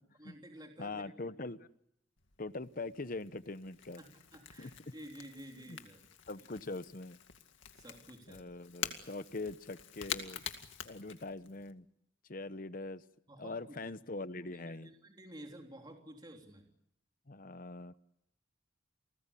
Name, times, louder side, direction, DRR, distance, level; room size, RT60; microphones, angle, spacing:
voice 1, 0.2-1.3 4.0-6.0 7.7-8.5 13.3-13.8 14.4-16.7, right 1 dB, 20° right, 2 dB, 3.4 m, -52 dB
voice 2, 0.8-1.7 2.4-4.0 4.6-4.7 5.6-5.8 6.3-7.2 8.3-10.4 10.8-11.9 12.3-13.0 13.4-14.9 17.3-17.9, left 3 dB, 45° left, 13 dB, 1.0 m, -42 dB
Crackle / Crack, 2.2-11.7, left 8 dB, 90° left, 2.2 m, -46 dB
29.5 x 20.0 x 8.5 m, 0.78 s
head